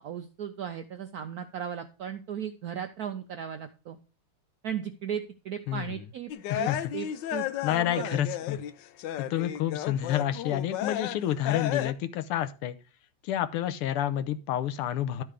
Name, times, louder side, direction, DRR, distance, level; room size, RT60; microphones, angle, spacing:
voice 1, 0.0-4.0 4.6-7.5 8.0-8.2, right 8 dB, 90° right, 7 dB, 0.8 m, -36 dB
voice 2, 5.7-6.0 6.5-6.9 7.6-8.6 9.2-12.8 13.2-15.2, left 11 dB, 90° left, 11 dB, 1.7 m, -29 dB
sound 1, 6.3-8.7 9.0-11.2 11.4-11.9, left 12 dB, 70° left, 1.1 m, -33 dB
12.0 x 4.6 x 4.9 m, 0.35 s
omnidirectional pair, 2.4 m